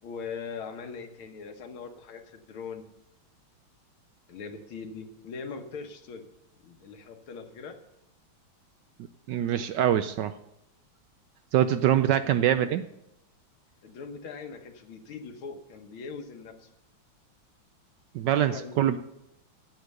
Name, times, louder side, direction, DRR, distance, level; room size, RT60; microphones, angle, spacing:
voice 1, 0.0-2.8 4.3-6.3 6.6-7.7 11.8-12.0 13.8-16.7 18.5-18.8, left 5 dB, 85° left, 5 dB, 2.0 m, -41 dB
voice 2, 9.3-10.3 11.5-12.8 18.1-19.0, right 11 dB, 75° right, 11 dB, 1.0 m, -24 dB
10.5 x 8.3 x 6.5 m, 0.83 s
omnidirectional pair, 2.2 m